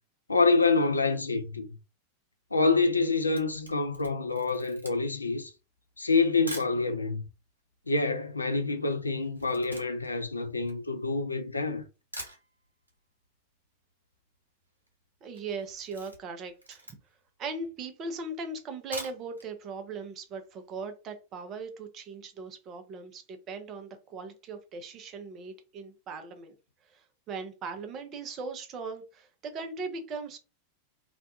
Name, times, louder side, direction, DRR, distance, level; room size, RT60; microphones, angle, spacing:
voice 1, 0.3-1.7 2.5-5.5 6.0-7.2 7.9-11.8, left 3 dB, 80° left, 0.4 m, -27 dB
Camera, 3.1-6.8 7.5-7.6 7.8-11.4 11.8-11.9 12.1-13.0 13.2-13.3 13.6-13.7 13.9-14.4 14.7-14.9 15.3-17.3 17.8-17.9 18.7-19.5 19.8-19.9 20.3-20.4, right 1 dB, 85° right, 0.7 m, -45 dB
voice 2, 15.2-16.8 17.4-26.5 26.9-30.4, right 4 dB, 30° right, 0.6 m, -39 dB
2.5 x 2.2 x 2.7 m
figure-of-eight pair, 90°, 0 cm